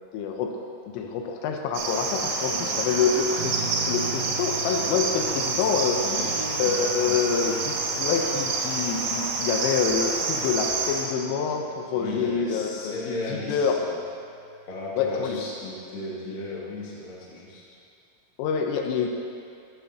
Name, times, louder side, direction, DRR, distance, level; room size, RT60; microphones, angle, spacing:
voice 1, 0.1-0.5 0.9-13.8 15.0-15.4 18.4-19.1, left 6 dB, 85° left, 2 dB, 3.2 m, -27 dB
Cricket, 1.7-11.1, right 3 dB, 75° right, 2.9 m, -28 dB
voice 2, 2.2-2.6 6.0-6.7 7.0-7.1 7.4-7.6 11.9-13.9 14.7-17.6, left 2 dB, 50° left, -7 dB, 1.7 m, -36 dB
sound 1, 3.4-12.5 13.9-14.5, right 7 dB, 90° right, 2.3 m, -41 dB
17.0 x 7.5 x 2.8 m, 2.5 s
omnidirectional pair, 5.8 m